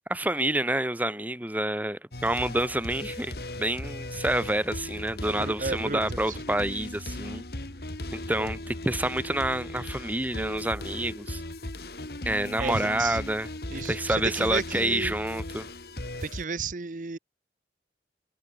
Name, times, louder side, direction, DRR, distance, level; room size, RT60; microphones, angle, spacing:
voice 1, 0.1-7.4 8.1-11.4 12.3-15.7, right 1 dB, 10° right, 1.8 m, -28 dB
sound 1, 2.1-16.4, left 1 dB, 65° left, 2.7 m, -37 dB
voice 2, 5.4-6.4 8.4-8.5 12.6-13.2 13.7-15.1 16.2-17.2, right 4 dB, 45° right, 0.7 m, -33 dB
head